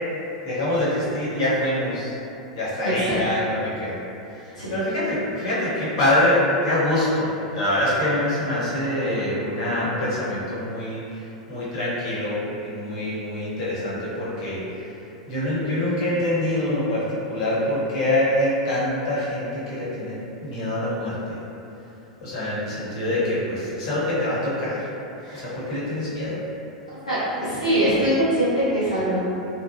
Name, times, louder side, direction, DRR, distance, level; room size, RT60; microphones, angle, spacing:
voice 1, 0.4-2.1 2.6-4.0 4.3-11.0 11.5-14.6 15.3-21.3 22.2-24.9 25.3-26.4, left 1 dB, 55° left, -9 dB, 1.0 m, -25 dB
voice 2, 27.0-29.2, right 1 dB, 80° left, -12 dB, 0.6 m, -23 dB
2.8 x 2.0 x 2.8 m, 2.9 s
figure-of-eight pair, 90°, 4 cm